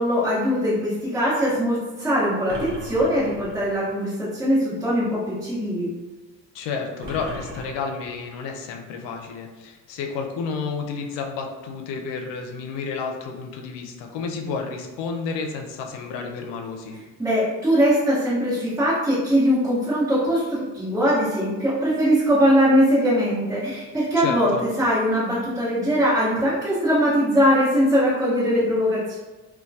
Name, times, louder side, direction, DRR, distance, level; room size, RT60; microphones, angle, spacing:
voice 1, 0.0-5.9 17.2-29.2, equal, 10° right, -12 dB, 1.0 m, -21 dB
sound 1, 2.5-3.9 7.0-8.5, left 1 dB, 30° right, 0.7 m, -38 dB
voice 2, 6.5-17.0 24.2-24.6, left 5 dB, 80° left, 3 dB, 0.6 m, -31 dB
2.1 x 2.1 x 2.6 m, 1.2 s
supercardioid pair, 75°, 43 cm